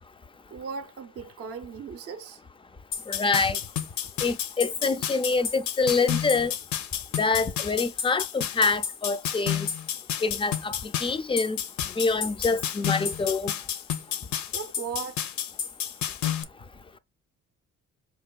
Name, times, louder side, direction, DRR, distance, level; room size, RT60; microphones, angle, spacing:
voice 1, 0.5-2.4 14.5-15.3, right 6 dB, 50° right, 0.5 m, -37 dB
sound 1, 2.9-16.4, left 9 dB, 70° left, 0.6 m, -31 dB
voice 2, 3.1-3.6 4.2-6.5 7.2-9.7 10.2-11.6 12.0-13.5, left 4 dB, 20° left, 0.4 m, -26 dB
4.6 x 2.8 x 2.3 m
cardioid pair, 90°, 30 cm